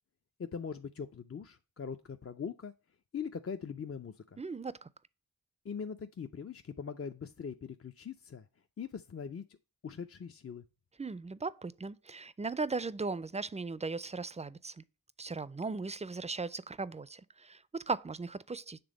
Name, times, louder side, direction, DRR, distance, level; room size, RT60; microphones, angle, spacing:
voice 1, 0.4-2.7 3.1-4.4 5.6-8.5 8.8-9.4 9.8-10.6, left 6 dB, 40° left, 0.5 m, -41 dB
voice 2, 4.4-4.9 11.0-14.8 15.2-18.8, right 4 dB, 20° right, 0.4 m, -38 dB
7.0 x 3.4 x 5.0 m
wide cardioid pair, 45°, 35 cm